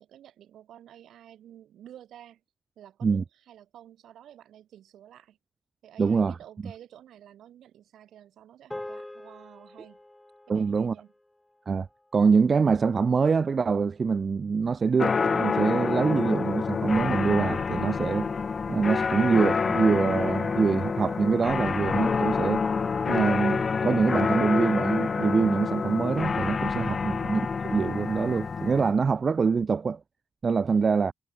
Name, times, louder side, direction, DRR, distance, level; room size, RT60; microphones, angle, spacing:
voice 1, 0.0-2.4 2.8-5.4 5.8-10.0 10.5-11.1 30.6-31.0, right 11 dB, 75° right, 7.8 m, -51 dB
voice 2, 6.0-6.4 10.5-10.9 11.7-11.9 12.1-18.3 18.7-22.7 23.1-30.0 30.4-31.1, right 5 dB, 50° right, 0.9 m, -25 dB
sound 1, 8.7-13.2, left 1 dB, 15° left, 2.9 m, -45 dB
sound 2, 15.0-28.9, left 5 dB, 50° left, 0.5 m, -27 dB
supercardioid pair, 50°, 0 cm